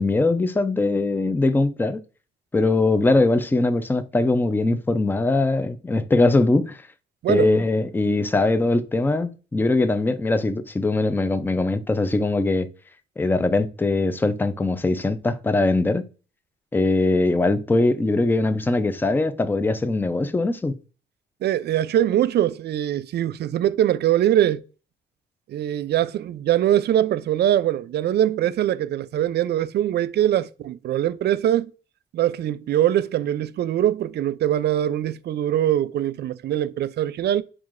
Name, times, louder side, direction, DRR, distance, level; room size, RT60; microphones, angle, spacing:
voice 1, 0.0-2.0 2.5-6.8 7.3-12.7 13.2-16.0 16.7-20.8, left 2 dB, 10° left, 0.4 m, -21 dB
voice 2, 21.4-24.6 25.5-31.7 32.1-37.4, right 11 dB, 55° right, 0.4 m, -22 dB
4.7 x 3.6 x 2.5 m
cardioid pair, 90°, 20 cm